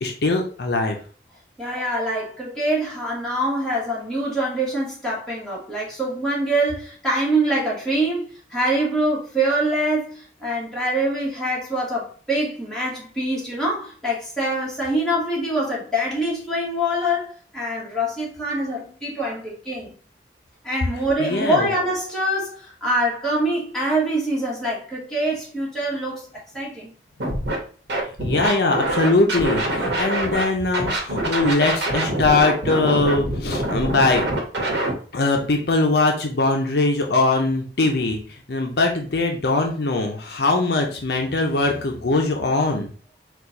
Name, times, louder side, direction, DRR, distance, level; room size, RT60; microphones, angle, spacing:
voice 1, 0.0-1.0 21.2-21.7 28.2-34.2 35.1-42.9, left 2 dB, 60° left, 0.6 m, -21 dB
voice 2, 1.6-19.9 20.6-26.3 26.5-26.9, right 1 dB, 5° left, 1.5 m, -24 dB
Scratching (performance technique), 27.2-27.6 27.9-30.4 30.7-34.9, right 1 dB, 70° right, 1.1 m, -24 dB
4.4 x 2.4 x 3.9 m
head